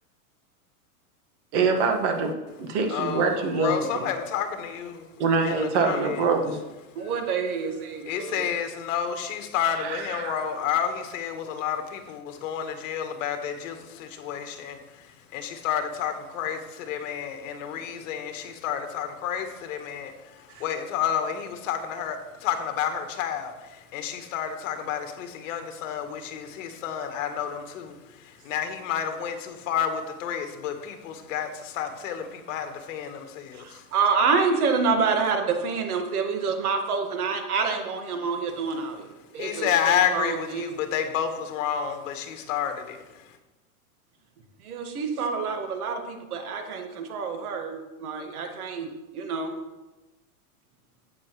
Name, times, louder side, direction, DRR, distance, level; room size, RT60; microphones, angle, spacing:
voice 1, 1.5-2.3 2.6-4.0 5.2-6.5 9.8-10.4 20.5-20.6, right 4 dB, 50° right, 3 dB, 1.7 m, -25 dB
voice 2, 2.9-5.1 5.4-6.3 8.1-22.2 22.4-33.9 39.3-43.4, left 8 dB, 60° left, 6 dB, 1.5 m, -30 dB
voice 3, 7.0-8.5 33.5-39.1 39.3-40.7 44.6-49.5, right 5 dB, 85° right, 4 dB, 1.8 m, -27 dB
12.0 x 8.5 x 3.2 m, 1.1 s
supercardioid pair, 155°, 43 cm